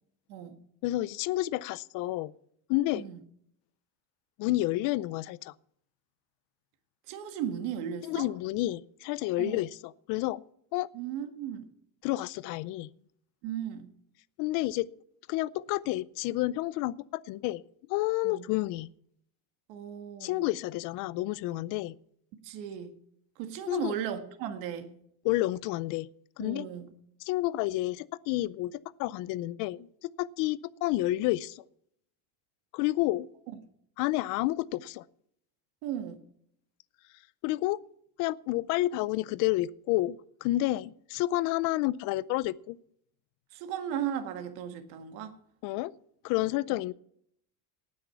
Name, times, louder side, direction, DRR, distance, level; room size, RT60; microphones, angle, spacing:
voice 1, 0.3-0.6 2.9-3.2 7.1-8.3 9.4-9.6 10.9-11.7 13.4-13.9 18.2-18.4 19.7-20.4 22.4-23.0 23.4-24.9 26.4-26.9 33.5-33.6 35.8-36.2 43.5-45.3, right 9 dB, 80° right, 1.7 m, -36 dB
voice 2, 0.8-2.3 2.7-3.0 4.4-5.5 8.0-10.4 10.7-10.9 12.0-12.9 14.4-14.9 15.3-17.6 17.9-18.9 20.2-21.9 23.7-23.9 25.2-26.1 26.4-26.7 27.3-31.6 32.7-33.3 34.0-35.0 37.4-37.8 38.2-42.8 45.6-45.9 46.2-46.9, left 17 dB, 55° left, 0.5 m, -30 dB
18.5 x 6.5 x 5.7 m
cardioid pair, 175°, 39 cm